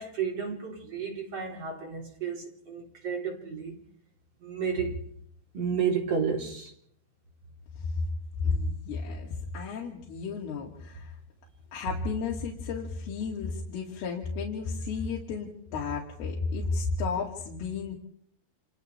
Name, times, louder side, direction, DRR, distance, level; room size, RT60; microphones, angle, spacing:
voice 1, 0.0-3.8 4.4-5.0 5.5-6.7, right 6 dB, 40° right, 4.2 m, -32 dB
voice 2, 8.4-11.1 11.7-18.0, left 4 dB, 85° left, 4.4 m, -33 dB
29.5 x 28.0 x 3.3 m
omnidirectional pair, 4.4 m